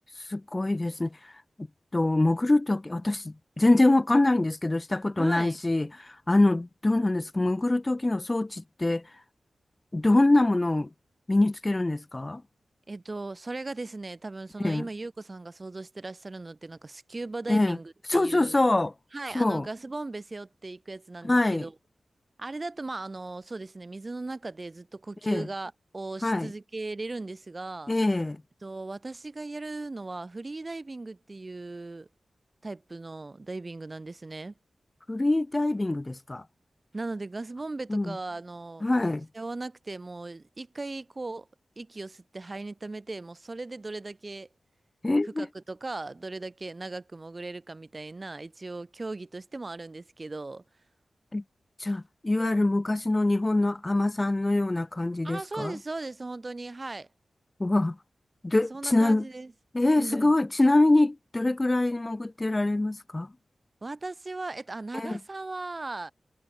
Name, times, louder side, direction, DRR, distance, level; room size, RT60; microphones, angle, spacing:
voice 1, 0.2-1.7 1.9-9.2 9.9-10.9 11.3-12.4 14.6-14.9 17.5-17.8 18.1-18.9 19.3-19.7 21.2-21.6 25.2-25.5 26.2-26.5 27.9-28.4 35.1-36.4 37.9-38.2 38.8-39.3 45.0-45.5 51.3-51.4 51.8-55.8 57.6-58.0 58.4-59.3 59.7-63.3 64.9-65.2, left 2 dB, 20° left, 3.6 m, -24 dB
voice 2, 5.2-5.6 12.9-18.6 19.1-21.7 22.4-27.9 28.6-32.1 32.6-34.5 36.9-38.8 39.3-41.5 41.8-44.5 45.4-50.6 55.2-57.1 58.7-59.5 60.0-60.3 63.8-66.1, right 2 dB, 30° right, 6.6 m, -38 dB
wide cardioid pair, 135°, 0 cm